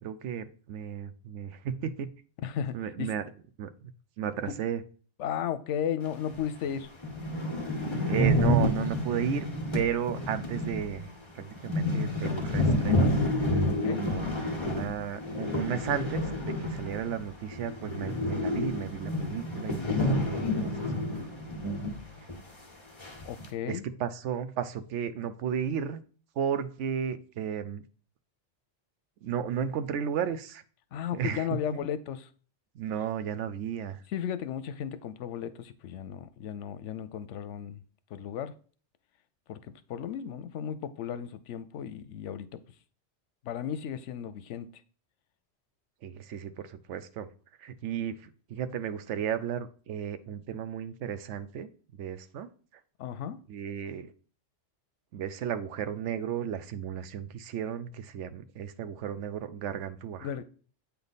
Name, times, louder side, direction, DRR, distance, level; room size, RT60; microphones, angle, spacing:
voice 1, 0.0-2.1 2.7-3.2 3.6-3.9 4.2-4.8 8.1-9.5 9.7-13.1 13.9-14.3 14.6-21.3 23.7-26.0 26.4-27.8 29.2-30.6 31.1-31.5 32.7-34.0 46.0-47.3 47.6-52.5 53.5-54.1 55.1-60.3, right 8 dB, 85° right, 0.9 m, -34 dB
voice 2, 2.4-3.1 4.5-4.6 5.2-6.9 13.7-14.1 23.2-23.8 30.9-32.3 34.1-37.8 38.1-38.5 39.5-42.6 43.4-44.7 53.0-53.4 60.2-60.4, left 9 dB, 85° left, 0.9 m, -35 dB
sound 1, 6.3-6.4 6.8-6.9 7.0-17.3 17.5-22.0 22.3-22.4 23.0-23.5, left 1 dB, 25° left, 1.1 m, -29 dB
8.4 x 3.4 x 4.0 m
omnidirectional pair, 1.2 m